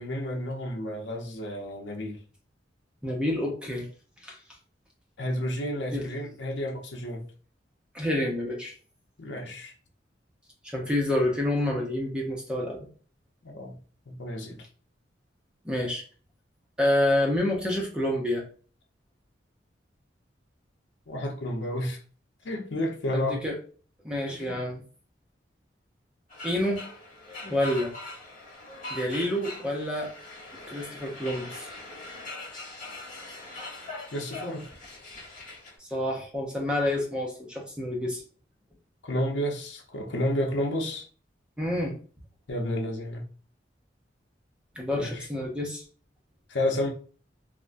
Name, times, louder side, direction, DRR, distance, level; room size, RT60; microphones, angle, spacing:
voice 1, 0.0-2.2 5.2-7.2 9.2-9.7 13.4-13.8 14.1-14.6 21.1-22.0 22.4-23.4 24.3-24.6 34.1-34.7 39.0-41.1 42.5-43.2 44.9-45.3 46.5-46.9, left 1 dB, 85° left, 0.7 m, -31 dB
voice 2, 3.0-3.9 4.2-4.4 5.9-6.0 7.9-8.7 10.6-12.9 15.6-16.0 16.8-18.4 23.1-23.5 24.0-24.8 26.4-26.8 27.4-27.9 28.9-30.1 30.7-31.7 35.8-38.2 41.6-42.0 44.8-45.8, left 1 dB, 5° right, 0.6 m, -28 dB
sound 1, 26.3-35.8, left 2 dB, 50° left, 1.1 m, -42 dB
3.4 x 2.1 x 2.5 m
head